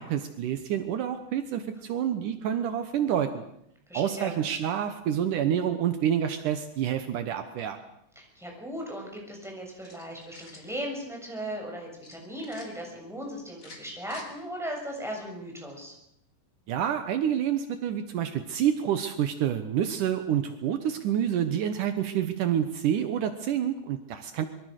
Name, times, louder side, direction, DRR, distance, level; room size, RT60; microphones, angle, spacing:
voice 1, 0.0-3.4 3.9-7.8 16.7-24.5, right 9 dB, 80° right, 9 dB, 1.8 m, -28 dB
voice 2, 3.9-4.4 8.2-15.9, equal, ahead, 0 dB, 7.0 m, -37 dB
sound 1, 9.8-10.7 12.0-12.7 13.5-14.3, left 3 dB, 30° left, 4.2 m, -49 dB
25.5 x 23.0 x 6.6 m, 0.77 s
omnidirectional pair, 5.4 m